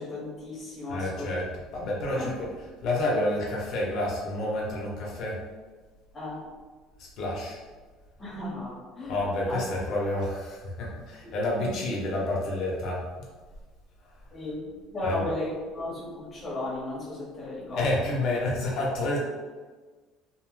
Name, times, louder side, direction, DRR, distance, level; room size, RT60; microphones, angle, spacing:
voice 1, 0.0-1.3 2.2-2.3 6.1-6.5 8.2-9.2 9.5-9.6 11.6-11.8 14.3-17.9, left 2 dB, 15° left, -8 dB, 1.0 m, -35 dB
voice 2, 0.9-2.5 2.8-5.4 7.0-7.6 9.1-13.0 15.0-15.3 17.7-19.2, left 1 dB, 45° left, -4 dB, 0.8 m, -29 dB
2.8 x 2.1 x 3.1 m, 1.4 s
cardioid pair, 170°, 0 cm